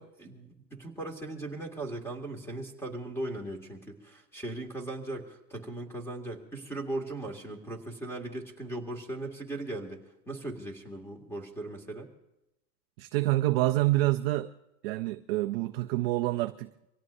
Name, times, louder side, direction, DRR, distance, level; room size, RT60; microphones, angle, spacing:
voice 1, 0.0-12.1, right 2 dB, 5° left, 2.1 m, -38 dB
voice 2, 13.0-14.5 14.8-16.7, right 18 dB, 40° right, 0.4 m, -27 dB
25.0 x 17.0 x 2.6 m
hypercardioid pair, 130°, 50 cm